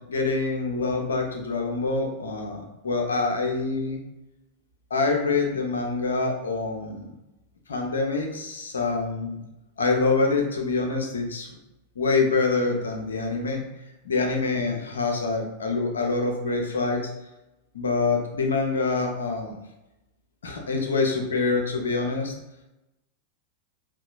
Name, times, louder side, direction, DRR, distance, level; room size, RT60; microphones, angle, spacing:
voice 1, 0.1-4.0 4.9-7.1 7.7-9.4 9.8-11.5 12.0-13.6 14.0-17.1 17.7-19.6 20.4-22.3, left 3 dB, 70° left, 2 dB, 0.5 m, -25 dB
3.7 x 2.3 x 2.2 m, 0.95 s
figure-of-eight pair, 90°, 0 cm